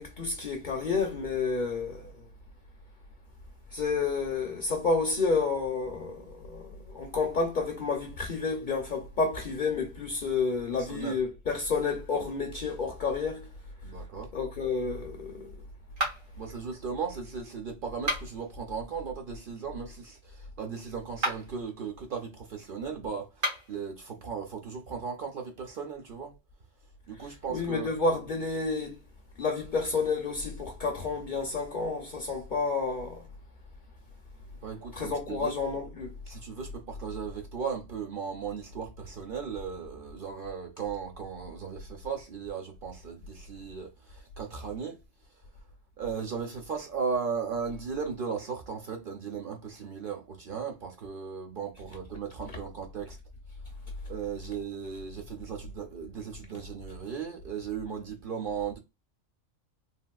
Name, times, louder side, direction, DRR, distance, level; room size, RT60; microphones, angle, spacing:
voice 1, 0.0-2.1 3.7-13.5 14.3-15.5 27.5-28.9 29.4-33.2 34.9-36.1, left 4 dB, 50° left, 0.6 m, -30 dB
voice 2, 10.8-11.2 13.8-14.3 16.4-26.3 27.1-27.9 34.6-35.5 36.3-45.0 46.0-53.2 54.1-58.8, right 6 dB, 55° right, 0.7 m, -36 dB
sound 1, 16.0-16.5 17.9-18.5 21.1-21.6 23.3-23.8, equal, 90° right, 1.6 m, -32 dB
3.5 x 2.5 x 2.3 m
omnidirectional pair, 1.3 m